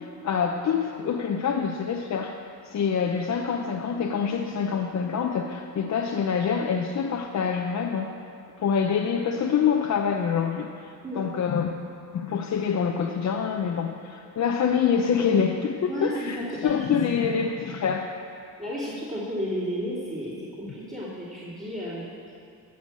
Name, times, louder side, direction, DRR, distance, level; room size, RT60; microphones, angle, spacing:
voice 1, 0.0-2.3 2.6-8.1 8.6-11.7 12.1-18.1, left 7 dB, 50° left, 2 dB, 0.7 m, -26 dB
voice 2, 15.9-16.9 17.2-17.3 18.6-22.1, equal, 25° right, -10 dB, 3.0 m, -32 dB
15.5 x 5.8 x 7.4 m, 2.4 s
cardioid pair, 125°, 36 cm